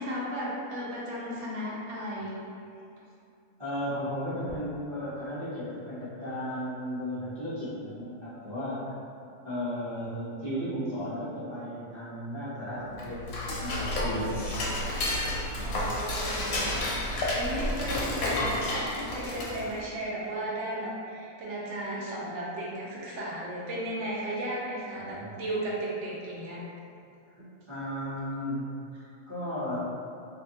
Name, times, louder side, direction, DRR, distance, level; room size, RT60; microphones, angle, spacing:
voice 1, 0.0-2.4 15.6-17.0 17.3-26.6, right 1 dB, 65° right, -6 dB, 0.9 m, -35 dB
voice 2, 3.6-9.0 9.4-14.8 15.5-15.8 24.9-25.4 27.4-28.6 28.9-29.8, equal, 25° right, -13 dB, 0.8 m, -35 dB
Dishes pots and pans / Cutlery silverware, 12.9-19.8, left 1 dB, 85° left, 1.0 m, -30 dB
2.7 x 2.3 x 2.7 m, 2.5 s
omnidirectional pair, 1.4 m